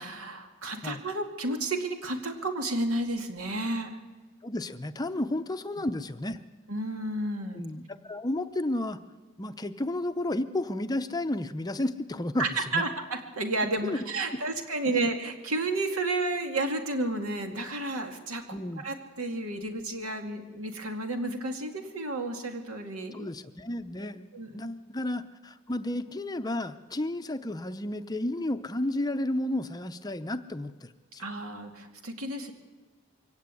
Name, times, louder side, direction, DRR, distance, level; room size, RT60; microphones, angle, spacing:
voice 1, 0.0-4.0 6.7-7.6 12.4-23.3 24.3-24.6 31.2-32.5, right 2 dB, 80° right, 4 dB, 2.3 m, -32 dB
voice 2, 4.4-6.4 7.5-9.0 9.4-12.8 13.8-14.0 14.9-15.1 18.5-18.8 23.1-24.3 24.5-31.3, left 1 dB, 20° left, 9 dB, 0.6 m, -32 dB
23.0 x 17.5 x 8.4 m, 1.4 s
head